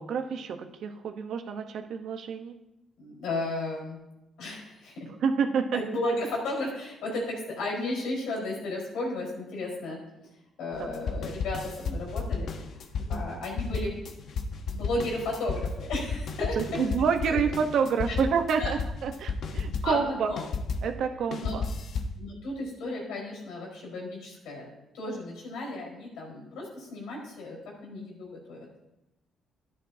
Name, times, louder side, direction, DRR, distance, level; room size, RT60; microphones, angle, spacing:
voice 1, 0.0-2.5 5.1-5.8 10.8-11.0 13.1-13.2 16.6-20.3 20.8-21.6, right 6 dB, 70° right, 6 dB, 1.0 m, -28 dB
voice 2, 3.0-4.0 4.4-5.1 5.7-10.0 10.6-12.8 13.1-14.0 14.7-16.8 17.3-17.4 18.1-18.2 18.6-18.7 19.7-20.4 21.4-21.6 22.2-24.7 24.9-28.7, left 2 dB, 85° left, -2 dB, 4.5 m, -34 dB
sound 1, 10.7-20.9 21.3-22.2, left 4 dB, 65° left, 1.0 m, -33 dB
12.5 x 11.0 x 2.8 m, 0.90 s
cardioid pair, 90°, 0 cm